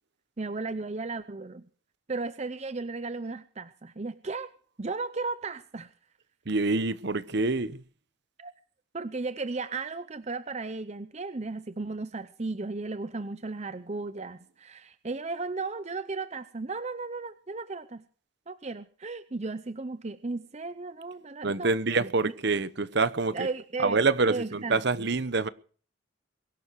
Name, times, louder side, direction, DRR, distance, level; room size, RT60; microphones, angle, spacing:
voice 1, 0.4-1.7 2.1-4.5 4.8-5.9 8.4-8.5 8.9-18.0 18.5-21.7 22.0-22.1 23.3-24.0 24.3-25.1, right 3 dB, 35° right, 0.7 m, -35 dB
voice 2, 6.5-7.8 21.4-23.5 23.8-25.5, right 3 dB, 55° right, 1.0 m, -26 dB
23.0 x 12.0 x 4.7 m
head